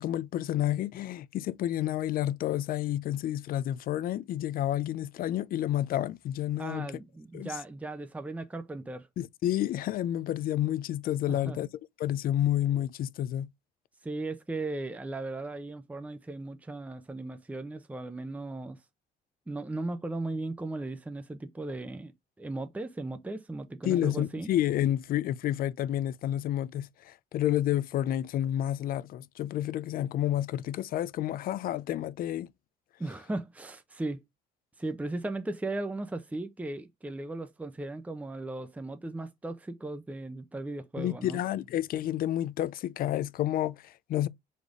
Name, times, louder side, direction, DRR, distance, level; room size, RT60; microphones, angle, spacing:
voice 1, 0.0-6.9 7.3-7.5 9.2-11.7 12.0-13.5 23.8-32.5 41.0-44.3, left 12 dB, 60° left, 0.5 m, -30 dB
voice 2, 6.6-9.1 11.3-11.6 14.0-18.8 19.5-22.1 22.4-24.5 33.0-34.2 34.8-41.4, right 2 dB, 10° right, 0.7 m, -37 dB
5.0 x 4.2 x 4.9 m
cardioid pair, 110°, 17 cm